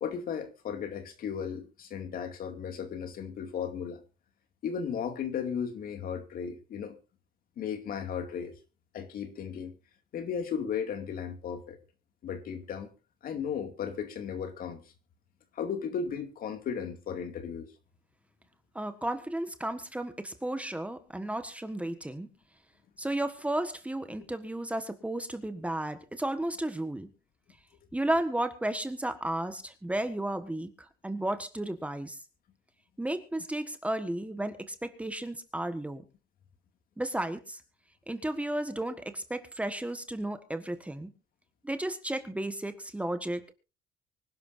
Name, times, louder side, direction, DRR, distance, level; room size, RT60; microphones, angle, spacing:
voice 1, 0.0-4.0 4.6-7.0 7.6-8.5 8.9-9.7 10.1-11.8 12.2-12.9 13.2-14.8 15.5-17.7, left 7 dB, 60° left, 2.4 m, -35 dB
voice 2, 18.7-22.3 23.0-27.1 27.9-30.7 31.0-32.2 33.0-36.0 37.0-37.6 38.1-41.1 41.6-43.5, right 1 dB, 10° right, 1.5 m, -33 dB
25.0 x 11.5 x 2.7 m
cardioid pair, 110°, 17 cm